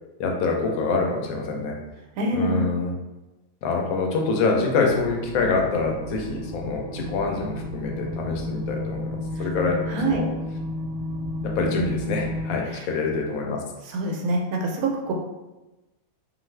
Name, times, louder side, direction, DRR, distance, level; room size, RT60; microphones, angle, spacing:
voice 1, 0.2-1.8 2.3-2.9 3.6-9.8 10.1-10.3 11.4-13.6, left 3 dB, 80° left, 0 dB, 1.0 m, -25 dB
voice 2, 2.2-2.7 9.4-9.5 9.9-10.2 12.6-12.9 13.8-15.1, right 2 dB, 90° right, 1 dB, 1.1 m, -26 dB
sound 1, 4.9-12.5, left 1 dB, 60° right, 0.7 m, -32 dB
2.5 x 2.4 x 3.1 m, 1.0 s
omnidirectional pair, 1.5 m